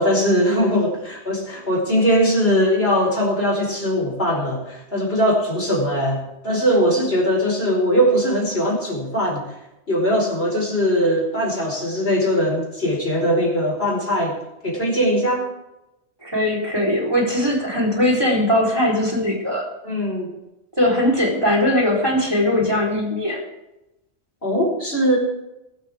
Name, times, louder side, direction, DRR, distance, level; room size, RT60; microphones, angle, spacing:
voice 1, 0.0-9.4 9.9-14.3 14.6-15.5 19.8-20.4 24.4-25.2, equal, 65° left, -1 dB, 5.3 m, -20 dB
voice 2, 16.2-19.6 20.7-23.4, left 1 dB, 20° right, -1 dB, 4.1 m, -20 dB
22.0 x 12.5 x 3.6 m, 0.93 s
omnidirectional pair, 1.1 m